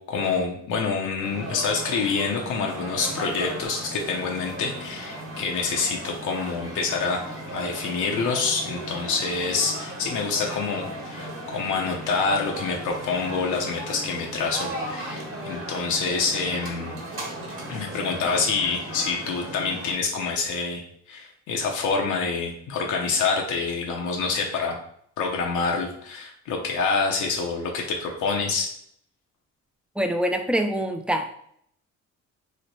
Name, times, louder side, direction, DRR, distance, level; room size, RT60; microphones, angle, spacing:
voice 1, 0.1-7.2 7.5-17.0 17.7-20.8 21.1-24.8 25.2-28.7, left 4 dB, 80° left, 0 dB, 0.7 m, -27 dB
sound 1, 1.2-19.9, right 1 dB, 45° right, 1.2 m, -36 dB
voice 2, 30.0-31.3, equal, 5° right, 5 dB, 0.3 m, -25 dB
3.1 x 2.1 x 4.0 m, 0.67 s
cardioid pair, 90°, 30 cm